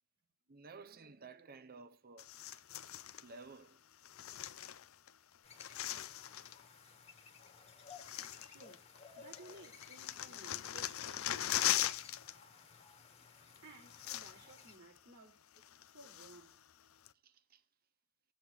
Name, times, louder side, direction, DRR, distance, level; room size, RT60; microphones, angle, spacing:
voice 1, 0.5-2.3 3.2-3.8 10.3-10.4 17.2-17.6, right 4 dB, 45° right, 0.7 m, -54 dB
sound 1, 2.2-3.3 4.0-5.1 5.4-6.6 7.4-7.5 7.9-9.0 9.3-12.3 12.6-12.8 13.6-13.7 13.9-14.6 15.0-15.1 15.6-16.5 17.1-17.2, left 12 dB, 70° left, 0.5 m, -40 dB
sound 2, 5.4-14.8, left 5 dB, 30° left, 1.7 m, -56 dB
voice 2, 8.5-8.8 9.2-11.5 13.6-15.5 15.9-16.6, right 2 dB, 75° right, 4.9 m, -57 dB
20.0 x 7.8 x 3.1 m
head